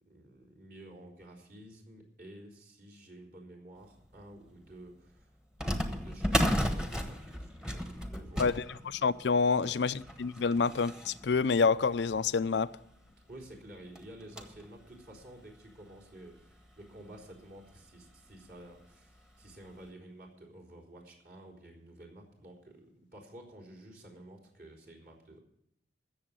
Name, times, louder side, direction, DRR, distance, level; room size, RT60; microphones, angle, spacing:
voice 1, 0.0-5.3 5.6-8.4 9.5-9.8 13.3-25.4, right 1 dB, 50° right, 3.9 m, -51 dB
sound 1, 4.1-4.2 5.6-12.5 13.1-13.2 13.4-13.5 13.9-14.7 15.2-15.3 16.1-16.2 16.6-16.7 18.1-18.3 18.8-18.9 19.5-19.6, equal, 5° right, 1.2 m, -35 dB
voice 2, 8.4-12.7, left 5 dB, 80° left, 0.5 m, -28 dB
15.5 x 7.2 x 9.0 m
head